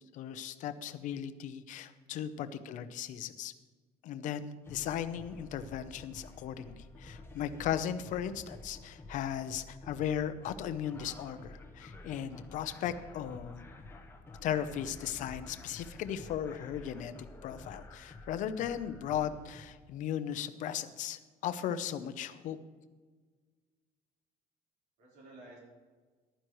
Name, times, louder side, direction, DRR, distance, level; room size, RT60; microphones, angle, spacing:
voice 1, 0.1-3.5 4.0-13.6 14.4-17.1 17.4-22.6, left 9 dB, 55° left, 11 dB, 0.7 m, -37 dB
sound 1, 4.6-19.6, left 2 dB, 15° left, 1.0 m, -50 dB
voice 2, 25.0-25.6, right 2 dB, 75° right, -4 dB, 4.1 m, -54 dB
14.5 x 11.5 x 3.1 m, 1.4 s
cardioid pair, 155°, 16 cm